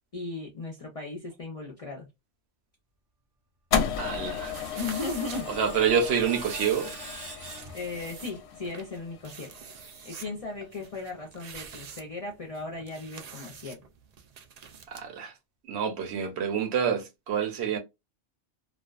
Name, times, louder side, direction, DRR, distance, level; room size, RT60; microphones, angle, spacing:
voice 1, 0.1-2.1 4.8-5.5 7.7-9.5 10.0-13.8, left 3 dB, 45° left, 0.5 m, -36 dB
sound 1, 3.7-10.0, left 7 dB, 70° left, 0.8 m, -34 dB
voice 2, 4.0-4.5 5.5-6.9 14.9-15.3 15.7-17.8, right 7 dB, 65° right, 0.8 m, -27 dB
Screech, 4.1-8.4, right 2 dB, 25° right, 0.6 m, -45 dB
sound 2, 4.4-15.0, right 6 dB, 85° right, 0.3 m, -46 dB
2.4 x 2.2 x 2.3 m
omnidirectional pair, 1.2 m